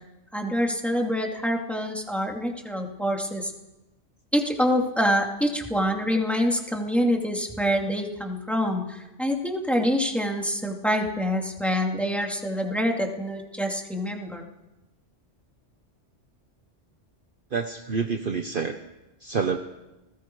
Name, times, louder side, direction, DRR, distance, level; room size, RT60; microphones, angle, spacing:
voice 1, 0.3-3.5 4.3-14.5, equal, ahead, 1 dB, 2.7 m, -26 dB
voice 2, 17.5-18.8 19.2-19.6, right 5 dB, 50° right, 6 dB, 1.1 m, -27 dB
30.0 x 20.0 x 4.8 m, 1.0 s
omnidirectional pair, 1.2 m